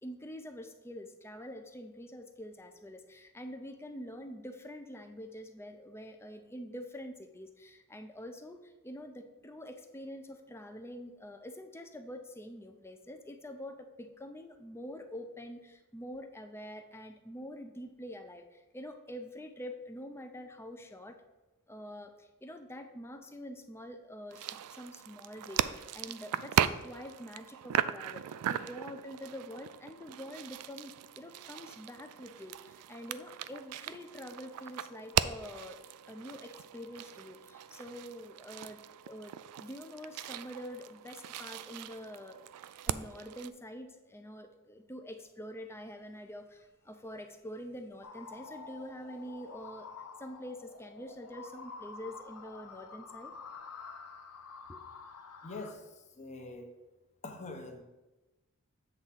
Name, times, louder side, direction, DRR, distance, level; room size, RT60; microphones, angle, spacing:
voice 1, 0.0-21.2 21.7-35.8 36.0-38.8 39.0-42.4 42.9-49.9 50.2-53.3 54.7-54.8, equal, 10° left, 6 dB, 0.5 m, -46 dB
sound 1, 24.3-43.5, right 10 dB, 85° right, 0.3 m, -38 dB
sound 2, 48.0-55.7, left 4 dB, 80° left, 0.6 m, -48 dB
voice 2, 55.4-56.7 57.2-57.8, left 2 dB, 30° left, 4 dB, 0.8 m, -44 dB
8.0 x 3.6 x 5.7 m, 1.1 s
head